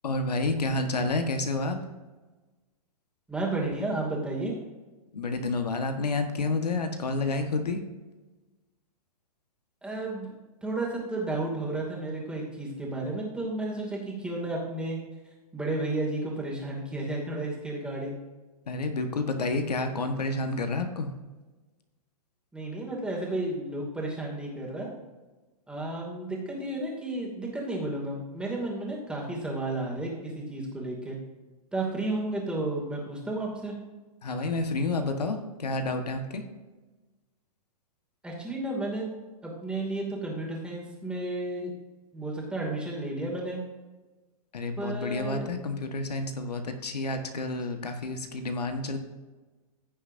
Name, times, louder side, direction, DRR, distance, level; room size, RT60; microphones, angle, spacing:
voice 1, 0.0-1.8 5.1-7.8 18.7-21.1 34.2-36.4 44.5-49.0, left 3 dB, 85° left, 6 dB, 1.5 m, -29 dB
voice 2, 3.3-4.5 9.8-10.3 10.6-15.0 15.5-18.2 22.5-24.9 25.7-31.2 31.7-33.7 38.2-39.1 39.4-41.7 42.1-43.6 44.8-45.5, right 2 dB, 5° right, -3 dB, 2.5 m, -32 dB
16.0 x 6.4 x 2.7 m, 1.2 s
hypercardioid pair, 130°, 20 cm